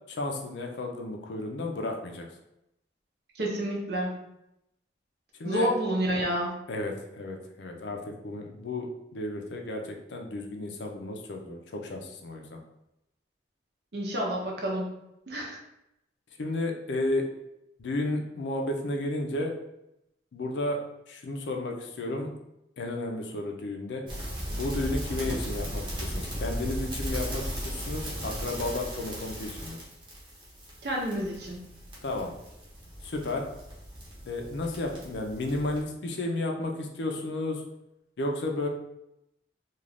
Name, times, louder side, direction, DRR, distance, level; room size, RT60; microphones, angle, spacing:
voice 1, 0.1-2.3 5.4-5.7 6.7-8.0 8.2-12.6 16.4-17.2 17.8-19.5 20.3-20.8 21.1-22.3 22.8-24.0 24.5-29.8 32.0-32.3 33.0-33.5 34.3-37.6 38.2-38.7, left 2 dB, 75° left, 2 dB, 0.5 m, -33 dB
voice 2, 3.4-4.1 5.4-6.5 13.9-14.9 15.3-15.6 30.8-31.6, equal, 60° right, -1 dB, 0.7 m, -29 dB
sound 1, 24.1-35.8, equal, 25° right, 0.8 m, -37 dB
2.5 x 2.3 x 3.3 m, 0.85 s
head